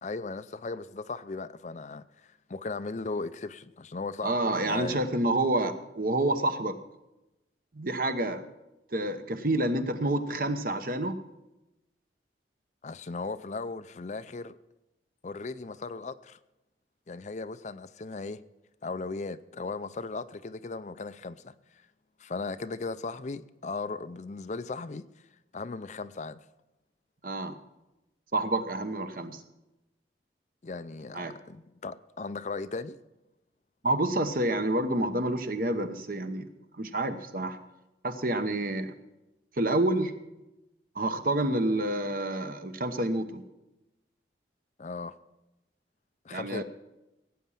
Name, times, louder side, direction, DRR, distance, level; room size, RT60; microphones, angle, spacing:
voice 1, 0.0-4.4 4.6-5.0 12.8-14.6 15.2-16.4 17.1-18.4 18.8-21.8 22.2-25.1 25.5-26.4 30.6-33.0 44.8-45.1 46.2-46.6, left 3 dB, 40° left, 0.5 m, -37 dB
voice 2, 4.2-6.8 7.7-8.4 8.9-11.2 27.2-27.5 28.3-29.4 31.1-31.3 33.8-36.4 36.8-37.6 38.0-38.9 39.6-40.1 40.9-43.4 46.3-46.6, right 1 dB, 50° right, 1.1 m, -28 dB
17.5 x 8.5 x 5.7 m
head